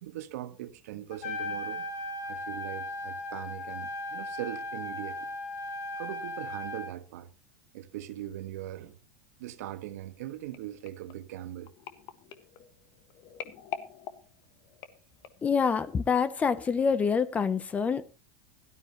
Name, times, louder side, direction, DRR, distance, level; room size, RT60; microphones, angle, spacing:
voice 1, 0.0-1.9 2.2-5.3 5.9-7.3 7.7-9.0 9.4-11.7, right 13 dB, 80° right, 1.3 m, -40 dB
Trumpet, 1.1-6.9, left 2 dB, 70° left, 3.1 m, -37 dB
sound 1, 10.5-15.6 16.2-16.4 16.7-16.8, left 9 dB, 45° left, 1.5 m, -45 dB
voice 2, 15.4-18.1, left 6 dB, 15° left, 0.7 m, -26 dB
17.0 x 13.0 x 3.0 m
supercardioid pair, 150°, 8 cm